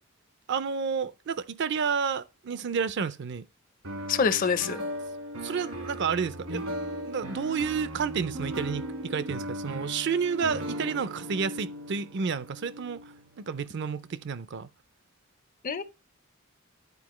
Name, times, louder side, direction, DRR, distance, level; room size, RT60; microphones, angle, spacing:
voice 1, 0.5-3.4 5.4-6.6 7.0-14.7, right 6 dB, 55° right, 0.4 m, -30 dB
sound 1, 3.8-13.8, equal, 80° right, 1.6 m, -37 dB
voice 2, 4.1-4.8 15.6-15.8, left 6 dB, 40° left, 0.5 m, -25 dB
10.5 x 4.3 x 3.0 m
head